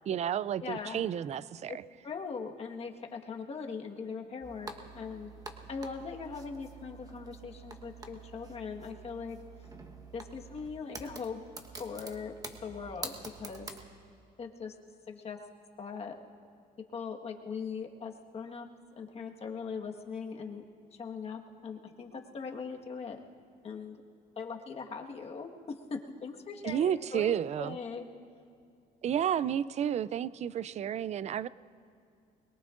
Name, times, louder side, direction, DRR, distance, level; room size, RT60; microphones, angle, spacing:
voice 1, 0.1-1.8 26.6-27.8 29.0-31.5, right 9 dB, 40° right, 18 dB, 0.4 m, -31 dB
voice 2, 0.6-1.0 1.7-1.8 2.0-5.3 5.7-9.4 10.1-11.4 11.8-12.3 12.6-13.7 14.4-14.7 15.1-15.4 15.8-16.2 16.9-18.7 19.0-20.6 20.9-23.2 23.6-24.0 24.4-28.0, left 5 dB, 40° left, 2 dB, 1.5 m, -40 dB
sound 1, 4.4-13.9, right 3 dB, 20° right, 1.2 m, -47 dB
23.0 x 22.0 x 2.5 m, 2.4 s
cardioid pair, 110°, 17 cm